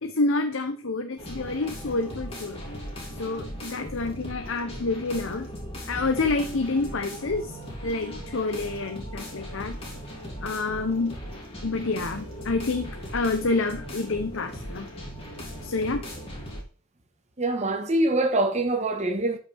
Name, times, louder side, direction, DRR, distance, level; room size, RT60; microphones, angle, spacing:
voice 1, 0.0-2.6 3.2-5.5 5.9-7.6 7.8-9.8 10.4-11.2 11.6-14.9 15.6-16.0, left 3 dB, 65° left, 0.7 m, -28 dB
sound 1, 1.2-16.6, equal, 30° left, 2.9 m, -38 dB
voice 2, 17.4-19.4, right 2 dB, 35° right, 1.2 m, -24 dB
12.0 x 5.7 x 3.4 m
head